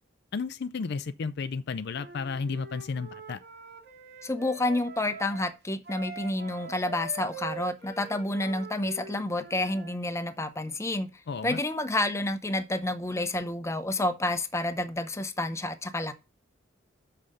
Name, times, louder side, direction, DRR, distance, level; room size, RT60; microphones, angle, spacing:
voice 1, 0.3-3.4 11.3-11.6, left 5 dB, 55° left, 0.5 m, -33 dB
Wind instrument woodwind instrument, 2.0-10.0, right 4 dB, 60° right, 1.8 m, -44 dB
voice 2, 4.2-11.1 11.4-16.1, left 1 dB, 15° left, 0.7 m, -29 dB
6.8 x 5.6 x 6.4 m
head